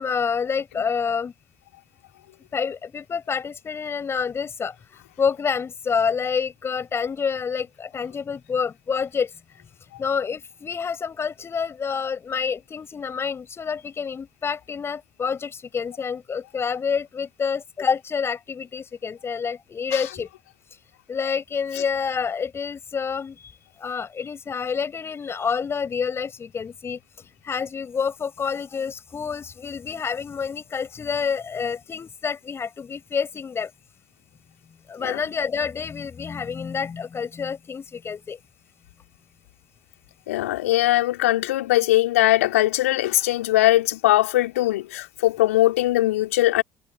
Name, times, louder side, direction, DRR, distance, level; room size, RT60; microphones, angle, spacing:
voice 1, 0.0-1.3 2.5-9.3 10.0-20.3 20.7-20.8 21.1-33.7 34.9-38.4, left 6 dB, 35° left, 6.1 m, -28 dB
voice 2, 40.3-46.6, left 16 dB, 75° left, 3.5 m, -20 dB
figure-of-eight pair, 60°, 8 cm